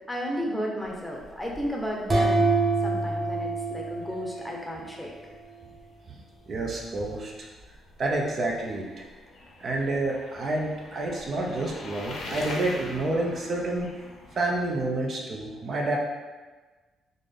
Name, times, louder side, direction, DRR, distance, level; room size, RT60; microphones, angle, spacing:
voice 1, 0.1-5.1, equal, 5° left, -2 dB, 0.7 m, -33 dB
sound 1, 0.8-14.8, left 2 dB, 65° left, 0.7 m, -45 dB
sound 2, 2.1-4.9, right 3 dB, 35° right, 1.0 m, -26 dB
voice 2, 6.1-7.5 8.0-9.1 9.6-13.9 14.3-16.0, right 2 dB, 50° right, -1 dB, 0.5 m, -29 dB
3.7 x 2.5 x 3.4 m, 1.3 s
cardioid pair, 90°, 0 cm